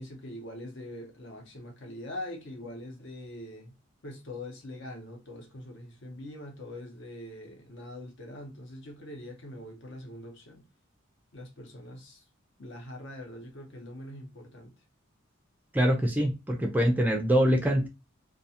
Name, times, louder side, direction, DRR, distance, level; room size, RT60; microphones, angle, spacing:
voice 1, 0.0-3.7 4.0-10.6 11.3-12.2 12.6-14.7, left 1 dB, 60° left, 0.8 m, -43 dB
voice 2, 15.7-17.9, equal, 10° right, 0.4 m, -24 dB
2.3 x 2.3 x 2.7 m
head